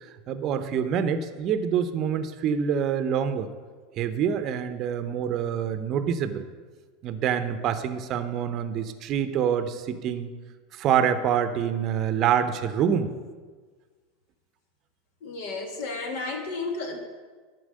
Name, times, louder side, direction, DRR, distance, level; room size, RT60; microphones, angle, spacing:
voice 1, 0.3-3.5 4.0-6.5 7.0-10.3 10.8-13.1, right 8 dB, 45° right, 10 dB, 0.7 m, -26 dB
voice 2, 15.2-17.0, left 3 dB, 65° left, 3 dB, 1.7 m, -32 dB
11.5 x 4.6 x 6.5 m, 1.5 s
hypercardioid pair, 90°, 0 cm